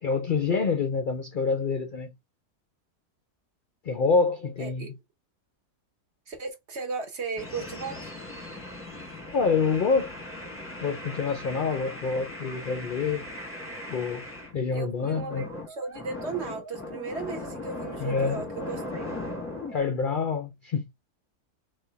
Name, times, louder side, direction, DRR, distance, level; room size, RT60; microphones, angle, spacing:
voice 1, 0.0-2.1 3.8-5.0 9.3-10.1 10.8-13.2 13.9-14.2 14.5-15.4 18.0-18.4 19.7-20.9, left 5 dB, 65° left, 0.5 m, -27 dB
voice 2, 4.6-4.9 6.3-8.1 14.7-19.2, right 4 dB, 50° right, 1.3 m, -36 dB
sound 1, 7.4-14.6 15.0-19.8, left 1 dB, 10° left, 1.0 m, -38 dB
4.2 x 2.7 x 3.4 m
omnidirectional pair, 1.6 m